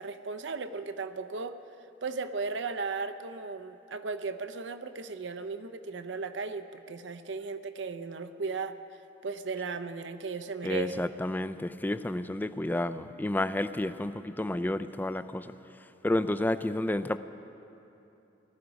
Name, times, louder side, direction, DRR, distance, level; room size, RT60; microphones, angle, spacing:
voice 1, 0.0-1.6 2.0-8.8 9.2-11.1, right 4 dB, 75° right, 10 dB, 0.6 m, -36 dB
voice 2, 10.6-15.5 16.0-17.2, left 1 dB, 10° left, 13 dB, 0.3 m, -30 dB
19.0 x 13.0 x 5.2 m, 2.8 s
head